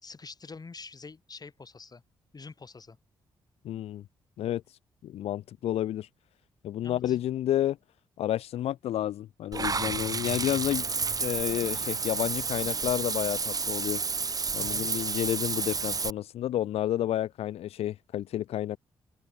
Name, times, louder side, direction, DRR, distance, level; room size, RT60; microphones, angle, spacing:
voice 1, 0.0-2.0 2.3-3.0 6.8-7.2 11.7-12.0 14.6-14.9, left 4 dB, 40° left, 5.5 m, -46 dB
voice 2, 3.6-4.0 4.4-6.1 6.6-7.8 8.2-10.9 11.2-14.0 14.5-18.8, left 12 dB, 75° left, 0.7 m, -30 dB
Water / Bathtub (filling or washing), 9.5-16.1, right 4 dB, 35° right, 0.9 m, -31 dB
open air
supercardioid pair, 50°, 10 cm